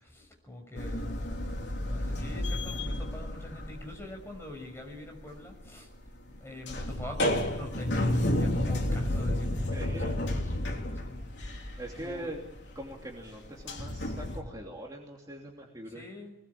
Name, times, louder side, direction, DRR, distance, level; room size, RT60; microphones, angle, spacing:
voice 1, 0.0-1.1 1.8-5.9 6.3-12.3 15.9-16.4, left 1 dB, 15° left, 2 dB, 6.6 m, -44 dB
sound 1, 0.8-4.5 4.8-14.4, left 1 dB, 65° left, 3.5 m, -31 dB
voice 2, 9.7-10.1 11.8-12.4 12.7-16.0, right 1 dB, 20° right, -1 dB, 2.9 m, -42 dB
25.0 x 20.5 x 8.6 m, 0.90 s
head